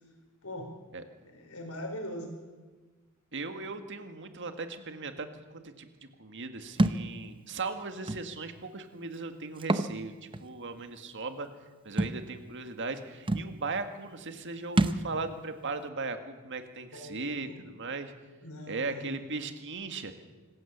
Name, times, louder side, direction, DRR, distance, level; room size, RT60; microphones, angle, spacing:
voice 1, 0.4-0.7 1.3-2.3 16.9-17.6 18.4-19.2, left 1 dB, 75° left, 4 dB, 4.9 m, -41 dB
voice 2, 3.3-5.9 6.2-10.1 10.4-11.5 11.8-18.1 18.7-20.1, right 3 dB, 60° right, 7 dB, 1.9 m, -38 dB
Thump thud, 6.8-7.0 8.1-8.2 9.6-9.9 10.3-10.4 12.0-12.2 13.0-13.1 13.3-13.5 14.8-15.1, right 2 dB, 25° right, 0.8 m, -26 dB
25.5 x 15.5 x 7.3 m, 1.3 s
head